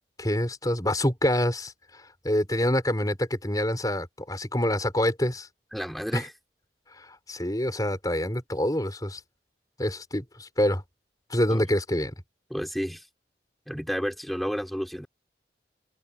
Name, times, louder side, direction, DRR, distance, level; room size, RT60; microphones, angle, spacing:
voice 1, 0.2-5.5 6.1-6.2 7.0-9.2 9.8-10.8 11.3-12.1, left 1 dB, 20° left, 5.2 m, -26 dB
voice 2, 5.7-6.3 11.5-11.6 12.5-13.1 13.7-15.1, equal, ahead, 4.7 m, -31 dB
head